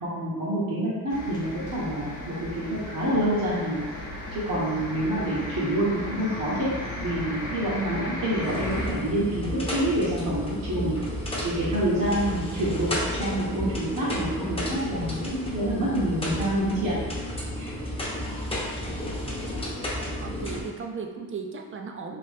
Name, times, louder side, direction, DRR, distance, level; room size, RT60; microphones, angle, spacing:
voice 1, 0.0-3.8 4.3-6.7 7.0-10.9 11.4-16.9 17.6-17.7, right 1 dB, 55° right, -8 dB, 1.2 m, -27 dB
sound 1, 1.1-8.9, left 1 dB, 50° left, 1.1 m, -35 dB
sound 2, 8.4-20.6, left 1 dB, 15° left, 0.9 m, -32 dB
voice 2, 20.2-22.2, right 5 dB, 30° right, 3 dB, 0.5 m, -36 dB
3.0 x 2.6 x 3.4 m, 1.4 s
supercardioid pair, 55°, 39 cm